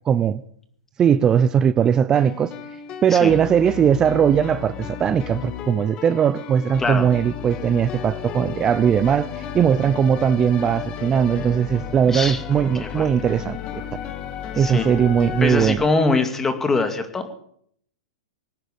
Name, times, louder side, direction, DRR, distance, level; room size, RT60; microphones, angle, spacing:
voice 1, 0.1-0.4 1.0-2.5 3.0-13.8 14.6-15.8, right 8 dB, 25° right, 0.6 m, -19 dB
sound 1, 2.1-15.7, left 9 dB, 35° left, 1.8 m, -33 dB
voice 2, 12.1-12.4 12.8-13.0 14.6-14.9 15.4-17.3, left 3 dB, 15° left, 2.3 m, -23 dB
19.5 x 10.0 x 7.0 m
hypercardioid pair, 125°, 3 cm